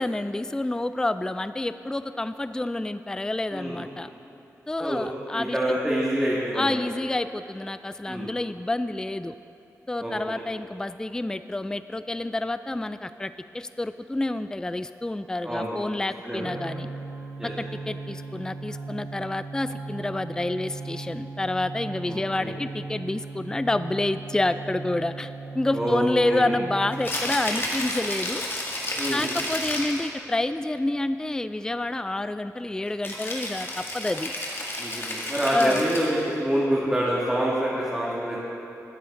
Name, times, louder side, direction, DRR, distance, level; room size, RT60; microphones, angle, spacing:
voice 1, 0.0-4.1 4.7-5.8 6.5-9.3 9.9-16.9 17.6-28.4 29.1-34.3 35.5-35.8, left 2 dB, 10° left, 12 dB, 0.3 m, -28 dB
voice 2, 4.8-6.8 8.1-8.3 10.0-10.4 15.4-15.8 16.2-16.4 17.4-17.5 22.1-22.5 25.7-26.5 29.0-29.3 34.8-38.4, right 1 dB, 10° right, -7 dB, 2.1 m, -27 dB
sound 1, 16.4-27.1, right 3 dB, 65° right, 0.8 m, -38 dB
Rattle (instrument), 26.9-30.1 33.0-36.3, left 1 dB, 40° left, 1.9 m, -31 dB
13.0 x 9.3 x 3.8 m, 2.8 s
cardioid pair, 50°, 6 cm